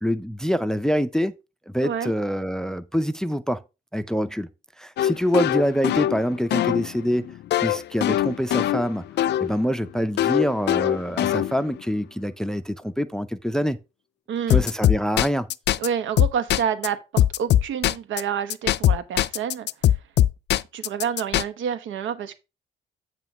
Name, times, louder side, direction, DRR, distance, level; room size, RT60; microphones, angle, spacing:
voice 1, 0.0-1.3 1.7-3.6 3.9-4.5 4.8-7.3 7.6-9.0 9.4-13.8 14.5-15.5, equal, 5° left, 0.5 m, -25 dB
sound 1, 5.0-9.5 10.2-11.8 14.5-15.9 16.2-16.9 17.2-18.2 18.5-21.4, left 12 dB, 60° left, 0.4 m, -21 dB
voice 2, 14.3-14.6 15.8-19.7 20.7-22.4, right 8 dB, 75° right, 1.0 m, -28 dB
9.1 x 3.1 x 5.8 m
cardioid pair, 90°, 20 cm